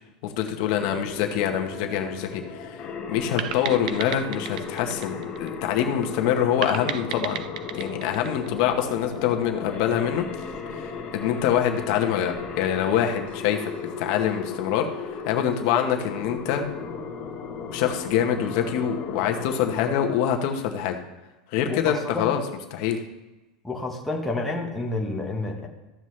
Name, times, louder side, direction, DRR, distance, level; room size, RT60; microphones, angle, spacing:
voice 1, 0.2-2.8 3.1-7.4 7.7-10.3 10.8-16.6 17.7-21.0 21.5-22.4 22.7-23.0, left 9 dB, 50° left, 4 dB, 1.0 m, -25 dB
sound 1, 0.8-20.1, left 5 dB, 25° left, 1.3 m, -36 dB
sound 2, 3.4-5.9 6.6-9.2, right 10 dB, 75° right, 0.6 m, -34 dB
voice 2, 21.7-22.3 23.6-25.7, left 2 dB, 5° left, -2 dB, 1.1 m, -29 dB
13.5 x 7.3 x 3.2 m, 1.1 s
supercardioid pair, 160°, 4 cm